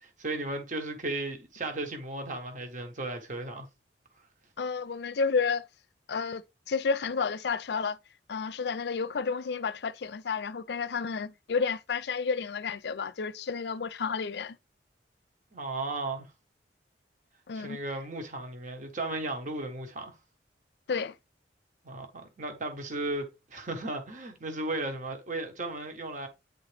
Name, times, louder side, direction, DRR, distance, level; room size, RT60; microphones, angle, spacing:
voice 1, 0.0-3.7 15.5-16.3 17.5-20.2 21.8-26.3, right 2 dB, 45° right, 1.2 m, -35 dB
voice 2, 4.6-5.7 6.1-6.4 6.7-8.0 8.3-14.6 17.5-17.8 20.9-21.2, left 5 dB, 65° left, 0.5 m, -31 dB
9.4 x 3.8 x 3.3 m
head